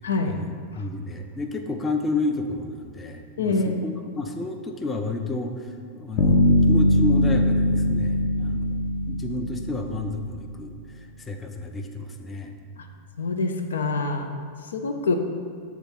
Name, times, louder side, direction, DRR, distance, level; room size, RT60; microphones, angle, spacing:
voice 1, 0.2-5.7 5.9-8.8 9.1-10.7 11.2-12.5, left 2 dB, 15° left, 5 dB, 0.6 m, -31 dB
voice 2, 3.4-3.8 9.0-9.1 13.2-14.3 14.7-15.1, left 3 dB, 65° left, 5 dB, 0.5 m, -25 dB
sound 1, 6.2-10.1, left 1 dB, 35° left, 1.0 m, -21 dB
7.0 x 3.6 x 5.7 m, 2.3 s
figure-of-eight pair, 90°, 0 cm